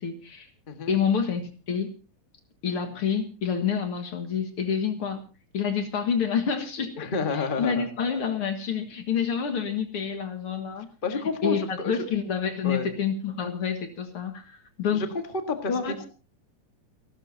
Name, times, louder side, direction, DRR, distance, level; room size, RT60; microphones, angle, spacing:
voice 1, 0.0-0.5 0.9-1.4 1.7-2.0 2.6-5.2 5.5-10.9 11.4-15.0 15.7-16.1, left 7 dB, 50° left, 7 dB, 2.3 m, -28 dB
voice 2, 7.0-7.9 11.0-12.0 12.6-12.9 14.9-15.7, left 4 dB, 25° left, 6 dB, 1.2 m, -30 dB
29.0 x 12.5 x 2.8 m, 0.32 s
omnidirectional pair, 3.4 m